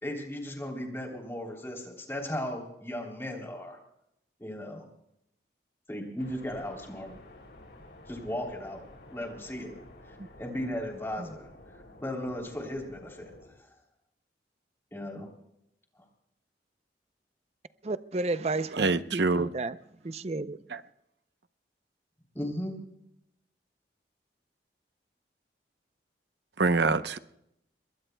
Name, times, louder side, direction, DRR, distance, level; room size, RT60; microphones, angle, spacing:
voice 1, 0.0-3.8 4.4-4.8 5.9-7.2 8.1-8.8 9.1-9.7 10.1-11.5 12.0-13.3 14.9-15.3 22.3-22.8, left 1 dB, 15° left, 3.2 m, -36 dB
sound 1, 6.2-13.5, left 1 dB, 75° left, 7.8 m, -52 dB
voice 2, 17.8-19.8 20.0-20.6, right 3 dB, 35° right, 0.5 m, -32 dB
voice 3, 18.7-19.5 20.7-20.8 26.6-27.2, right 3 dB, 75° right, 0.8 m, -25 dB
25.5 x 22.0 x 2.3 m
head